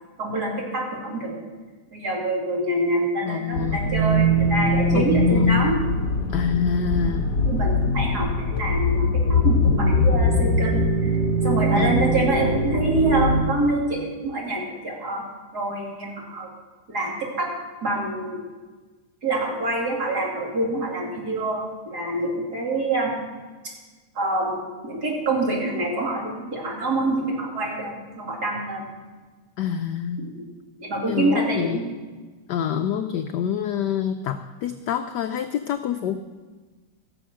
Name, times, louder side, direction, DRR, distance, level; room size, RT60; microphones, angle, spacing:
voice 1, 0.2-1.4 1.9-5.8 7.5-11.1 11.4-15.2 15.5-16.5 16.9-17.5 17.8-18.4 19.2-23.1 24.1-28.9 30.2-30.5 30.8-31.8, right 2 dB, 45° right, -2 dB, 3.0 m, -26 dB
voice 2, 3.2-3.8 4.9-5.5 6.3-7.3 11.8-12.0 29.6-30.3 31.1-31.8 32.5-36.2, left 8 dB, 75° left, 8 dB, 1.0 m, -26 dB
sound 1, 3.5-13.4, left 1 dB, 50° left, 1.9 m, -21 dB
15.5 x 7.1 x 6.2 m, 1.3 s
omnidirectional pair, 2.3 m